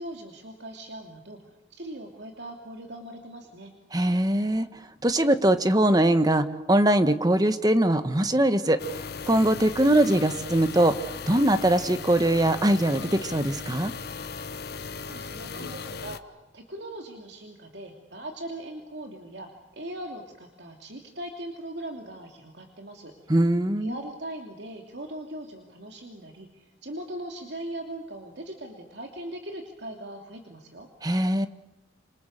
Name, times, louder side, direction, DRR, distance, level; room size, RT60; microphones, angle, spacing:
voice 1, 0.0-1.4 1.7-3.7 15.0-23.3 23.8-30.9, right 1 dB, 65° right, 2 dB, 2.8 m, -40 dB
voice 2, 3.9-4.7 5.0-8.8 9.3-11.0 11.3-13.9 23.3-24.0 31.0-31.5, right 1 dB, 20° right, 10 dB, 1.3 m, -22 dB
sound 1, 8.8-16.2, left 5 dB, 55° left, 1.1 m, -37 dB
27.5 x 27.0 x 6.7 m, 1.0 s
head